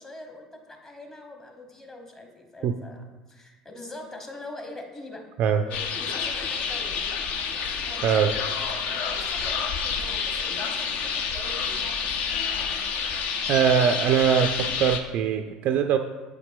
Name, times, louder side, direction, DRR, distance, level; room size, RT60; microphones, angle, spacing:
voice 1, 0.0-5.3 5.6-7.0 7.9-8.4 8.8-11.8, left 2 dB, 20° left, 4 dB, 1.3 m, -43 dB
sound 1, 5.7-15.0, left 6 dB, 55° left, 0.6 m, -29 dB
voice 2, 8.0-8.3 13.5-16.0, right 8 dB, 50° right, 6 dB, 0.3 m, -22 dB
8.2 x 4.9 x 3.5 m, 1.2 s
figure-of-eight pair, 65°, 3 cm